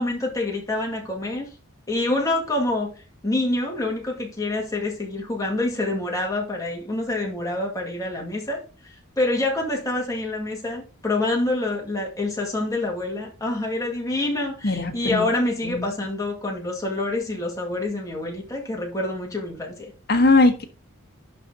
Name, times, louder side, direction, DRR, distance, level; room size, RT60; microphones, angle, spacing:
voice 1, 0.0-1.5 1.9-2.9 3.2-19.9, left 2 dB, 15° left, 2.0 m, -26 dB
voice 2, 14.6-15.2 15.6-15.8 20.1-20.6, left 2 dB, 45° left, 1.3 m, -19 dB
11.5 x 4.1 x 3.7 m
head